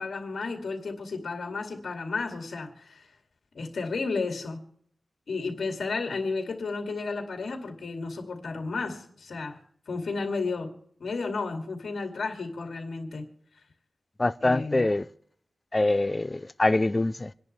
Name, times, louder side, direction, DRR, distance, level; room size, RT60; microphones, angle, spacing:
voice 1, 0.0-3.1 3.5-4.6 5.3-9.6 9.9-10.7 11.0-13.3 14.4-14.9, left 4 dB, 80° left, 2.5 m, -32 dB
voice 2, 14.2-15.1 15.7-17.3, left 2 dB, 25° left, 0.5 m, -24 dB
27.5 x 11.0 x 3.3 m
wide cardioid pair, 130°, 0 cm